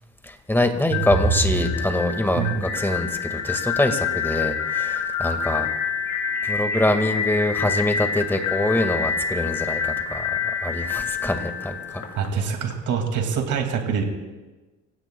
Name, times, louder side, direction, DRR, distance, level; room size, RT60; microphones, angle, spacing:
voice 1, 0.2-5.7 6.4-12.0, left 1 dB, 5° left, 6 dB, 1.8 m, -24 dB
sound 1, 0.9-12.7, left 7 dB, 70° left, 3.6 m, -27 dB
voice 2, 2.4-2.7 12.1-14.0, right 6 dB, 80° right, 3 dB, 2.4 m, -25 dB
30.0 x 17.0 x 2.3 m, 1.2 s
cardioid pair, 90°, 30 cm